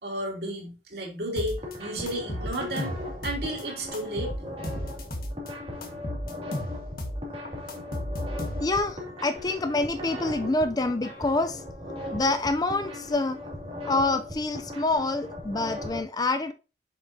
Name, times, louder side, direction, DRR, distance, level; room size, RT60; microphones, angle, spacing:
voice 1, 0.0-2.9 3.2-4.3, right 1 dB, 60° right, 2.8 m, -32 dB
sound 1, 1.2-16.0, left 1 dB, 30° right, 2.3 m, -38 dB
sound 2, 1.4-1.8 2.1-3.6 3.9-5.5 5.8-8.9, equal, 50° left, 1.4 m, -34 dB
voice 2, 8.6-11.6 12.1-13.4 13.8-16.5, left 2 dB, 20° left, 0.4 m, -26 dB
7.6 x 6.8 x 2.7 m
head